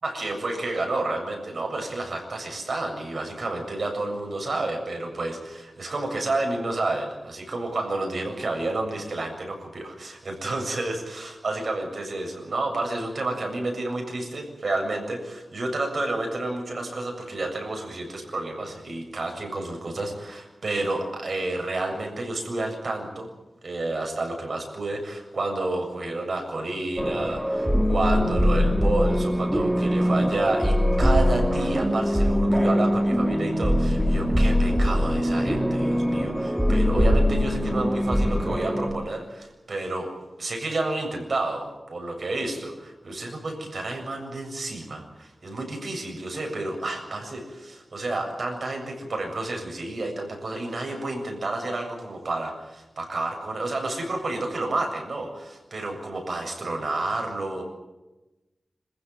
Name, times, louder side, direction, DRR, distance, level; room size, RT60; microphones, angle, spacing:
voice 1, 0.0-23.3 23.6-40.1 40.4-57.6, right 2 dB, 65° right, 3 dB, 7.4 m, -30 dB
sound 1, 27.0-38.9, equal, 5° right, 3.0 m, -22 dB
27.0 x 15.5 x 9.5 m, 1.1 s
wide cardioid pair, 90°, 0 cm